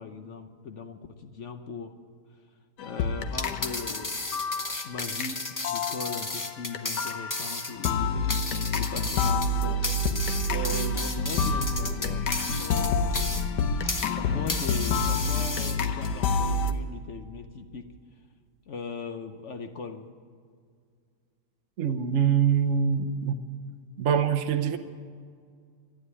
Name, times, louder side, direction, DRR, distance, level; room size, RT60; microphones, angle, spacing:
voice 1, 0.0-1.9 2.8-4.2 4.8-9.8 10.5-12.3 12.6-13.3 14.1-17.8 18.7-20.1, left 4 dB, 55° left, 1.0 m, -39 dB
sound 1, 2.8-16.7, left 3 dB, 85° left, 1.5 m, -28 dB
sound 2, 3.3-14.1 14.5-16.1, left 2 dB, 20° left, 0.4 m, -34 dB
voice 2, 21.8-23.4 24.0-24.8, right 7 dB, 55° right, 1.0 m, -24 dB
14.0 x 10.0 x 9.7 m
omnidirectional pair, 1.8 m